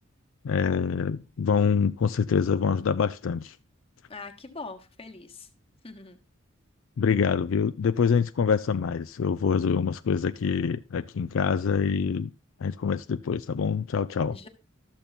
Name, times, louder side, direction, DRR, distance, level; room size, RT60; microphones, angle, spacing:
voice 1, 0.4-3.6 7.0-12.3 12.6-14.4, left 6 dB, 75° left, 0.4 m, -25 dB
voice 2, 4.1-5.5 5.8-6.2 14.3-14.5, left 3 dB, 30° left, 1.3 m, -42 dB
12.5 x 6.9 x 4.1 m
head